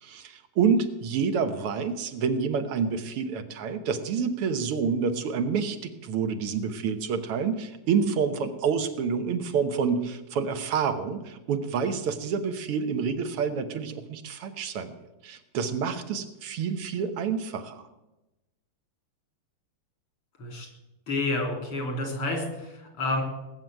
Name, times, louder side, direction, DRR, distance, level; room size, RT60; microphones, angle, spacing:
voice 1, 0.0-14.9 15.2-17.8, right 6 dB, 90° right, 8 dB, 2.2 m, -28 dB
voice 2, 21.1-23.2, left 2 dB, 80° left, 3 dB, 4.5 m, -29 dB
18.0 x 7.6 x 9.2 m, 1.0 s
omnidirectional pair, 2.4 m